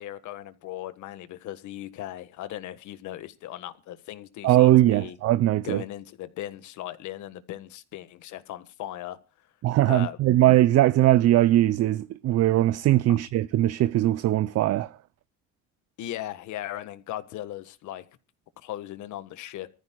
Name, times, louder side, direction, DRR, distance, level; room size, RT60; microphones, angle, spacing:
voice 1, 0.0-5.2 5.6-9.2 9.8-10.3 13.1-13.2 16.0-18.0 18.6-19.7, left 13 dB, 70° left, 1.6 m, -38 dB
voice 2, 4.4-5.8 9.6-15.0, right 15 dB, 55° right, 0.6 m, -20 dB
25.0 x 14.0 x 2.3 m
cardioid pair, 120°, 31 cm